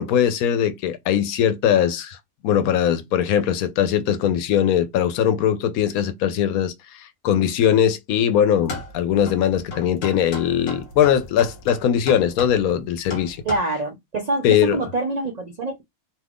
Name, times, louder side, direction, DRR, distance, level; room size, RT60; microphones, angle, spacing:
voice 1, 0.0-2.2 2.4-13.4 14.4-14.8, left 9 dB, 85° left, 1.0 m, -20 dB
sound 1, 8.6-13.6, left 2 dB, 60° left, 1.2 m, -36 dB
voice 2, 13.4-15.8, right 2 dB, 70° right, 0.4 m, -25 dB
2.7 x 2.4 x 3.4 m
omnidirectional pair, 1.5 m